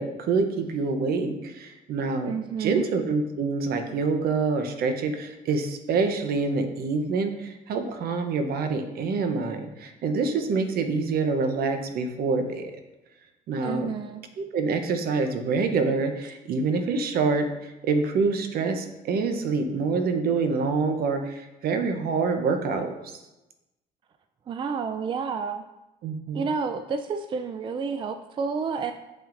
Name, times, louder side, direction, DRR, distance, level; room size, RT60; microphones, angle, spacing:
voice 1, 0.0-2.3 2.6-12.7 13.5-13.9 14.5-23.1 26.0-26.4, right 4 dB, 65° right, 7 dB, 0.8 m, -26 dB
voice 2, 2.3-2.9 13.6-14.2 24.5-25.6 26.3-28.9, right 5 dB, 30° right, 8 dB, 0.3 m, -30 dB
7.2 x 5.7 x 2.6 m, 1.0 s
cardioid pair, 110°, 17 cm